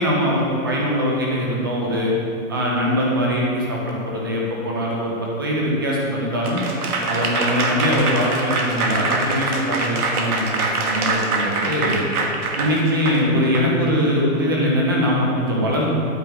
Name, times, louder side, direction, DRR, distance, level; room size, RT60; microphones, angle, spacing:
voice 1, 0.0-2.1 2.5-6.6 7.1-12.0 12.6-15.9, equal, 15° right, -4 dB, 0.7 m, -22 dB
Applause / Crowd, 6.4-13.7, right 3 dB, 90° right, 1.5 m, -24 dB
9.1 x 8.7 x 3.6 m, 2.7 s
hypercardioid pair, 175°, 43 cm